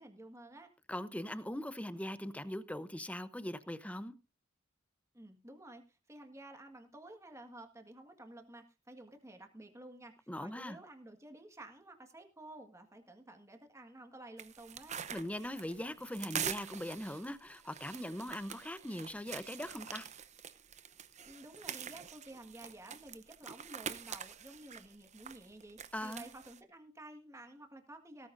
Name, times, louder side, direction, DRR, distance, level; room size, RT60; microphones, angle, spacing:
voice 1, 0.0-0.7 5.1-15.0 21.2-28.3, right 1 dB, 15° right, 1.7 m, -52 dB
voice 2, 0.9-4.1 10.3-10.8 15.1-20.1 25.9-26.3, left 1 dB, 5° left, 0.8 m, -41 dB
sound 1, 14.4-26.6, right 8 dB, 35° right, 0.8 m, -45 dB
17.0 x 14.0 x 2.6 m
head